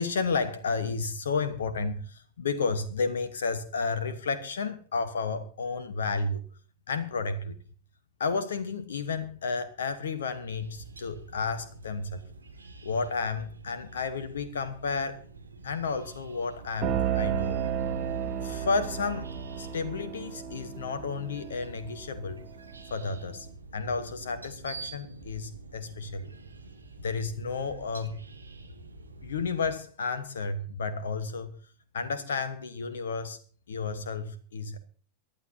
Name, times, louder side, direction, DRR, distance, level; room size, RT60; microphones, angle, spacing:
voice 1, 0.0-6.4 6.9-7.6 8.2-12.2 12.8-15.2 15.6-17.6 18.4-22.4 22.9-23.5 23.7-26.3 27.0-28.2 29.2-31.6 31.9-33.4 33.7-34.8, left 4 dB, 65° left, 1.2 m, -32 dB
sound 1, 10.5-29.7, right 3 dB, 80° right, 2.1 m, -47 dB
sound 2, 16.8-22.4, right 9 dB, 35° right, 2.2 m, -33 dB
23.5 x 12.0 x 2.8 m
figure-of-eight pair, 90°, 0 cm